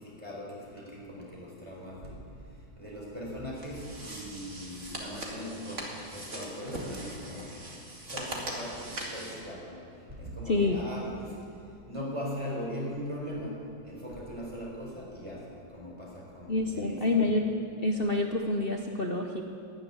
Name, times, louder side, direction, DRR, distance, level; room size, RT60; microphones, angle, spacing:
voice 1, 0.2-2.1 2.8-5.9 6.1-7.5 8.1-9.8 10.1-11.2 11.9-13.5 13.8-15.4 15.7-17.3, equal, 15° right, -4 dB, 4.5 m, -39 dB
sound 1, 3.5-9.4, right 1 dB, 35° right, 2.4 m, -40 dB
voice 2, 10.5-10.8 16.5-17.5 17.8-19.4, left 2 dB, 55° left, 3 dB, 0.6 m, -27 dB
13.5 x 11.0 x 9.4 m, 2.5 s
omnidirectional pair, 2.2 m